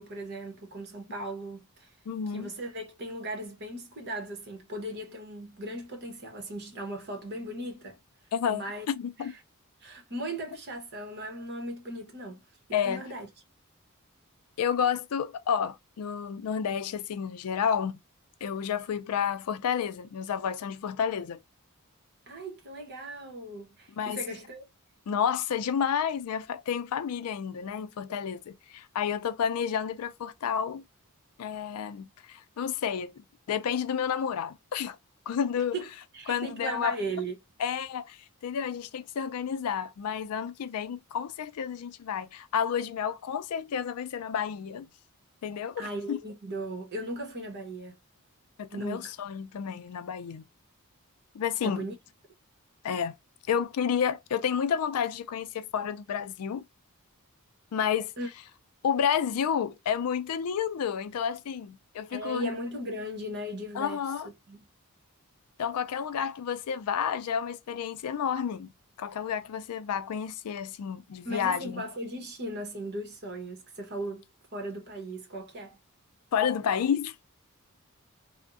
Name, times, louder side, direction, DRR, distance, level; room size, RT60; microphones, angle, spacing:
voice 1, 0.0-1.9 2.3-8.0 8.5-8.9 9.2-9.4 9.8-12.4 12.8-13.3 22.3-24.6 35.7-35.9 36.1-37.3 45.8-48.0 48.7-49.1 51.6-51.9 58.2-58.3 62.1-64.0 64.5-64.6 71.2-75.8, right 1 dB, 50° right, 1.0 m, -37 dB
voice 2, 2.1-2.5 8.3-9.3 12.7-13.0 14.6-18.0 18.4-21.4 24.0-24.2 25.1-30.8 31.4-33.1 33.5-35.0 35.3-35.8 36.3-36.9 37.6-44.9 45.4-46.2 48.6-50.4 51.3-51.9 52.8-53.1 53.5-56.6 57.7-58.1 58.8-62.5 63.8-64.3 65.6-68.7 69.0-71.8 76.3-77.2, left 7 dB, 80° left, 0.4 m, -30 dB
3.4 x 2.1 x 2.5 m
head